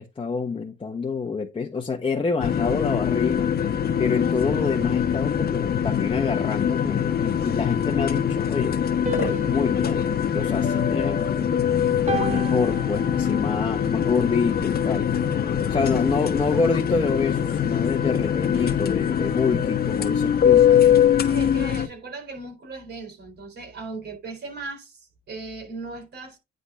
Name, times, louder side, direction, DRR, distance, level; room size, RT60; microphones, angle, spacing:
voice 1, 0.0-3.5 4.0-8.8 9.2-10.1 10.3-11.3 12.1-15.1 15.7-20.7, left 4 dB, 25° left, 1.3 m, -27 dB
sound 1, 2.4-21.9, left 9 dB, 50° left, 1.2 m, -23 dB
sound 2, 9.1-11.5 12.1-13.6, right 3 dB, 35° right, 1.4 m, -34 dB
voice 2, 21.2-26.4, right 3 dB, 55° right, 4.3 m, -37 dB
9.8 x 4.1 x 3.8 m
cardioid pair, 90°, 20 cm